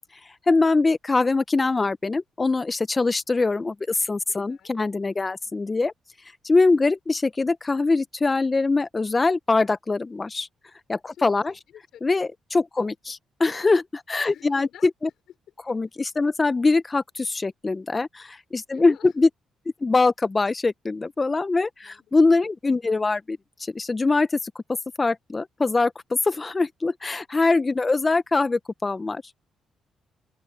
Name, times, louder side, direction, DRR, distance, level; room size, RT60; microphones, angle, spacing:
voice 1, 0.5-5.9 6.4-10.5 10.9-11.5 12.0-14.7 15.7-19.3 19.8-24.6 25.0-25.9 26.2-29.2, left 3 dB, 25° left, 0.7 m, -23 dB
voice 2, 4.3-4.7 5.4-5.6 11.1-12.1 12.8-12.9 14.3-15.1 18.7-19.2 21.8-22.2, left 10 dB, 70° left, 5.3 m, -49 dB
open air
cardioid pair, 90°, 0 cm